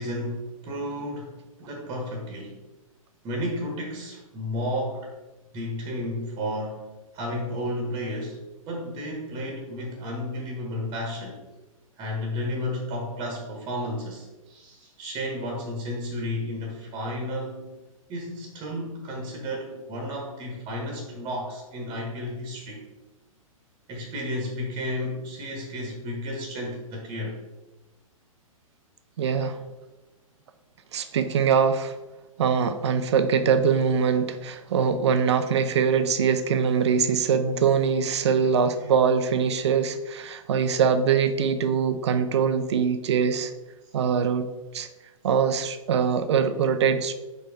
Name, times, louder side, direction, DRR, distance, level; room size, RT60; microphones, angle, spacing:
voice 1, 0.0-1.3 1.6-2.6 3.2-5.1 5.5-6.9 7.1-8.4 8.6-11.4 12.0-17.7 18.1-22.8 23.9-27.4, left 1 dB, 25° right, 1 dB, 1.2 m, -32 dB
voice 2, 29.2-29.6 30.9-32.0 32.4-43.5 43.9-44.5 44.7-44.9 45.2-47.1, right 6 dB, 50° right, 10 dB, 0.6 m, -23 dB
4.9 x 4.7 x 4.9 m, 1.1 s
figure-of-eight pair, 110°, 18 cm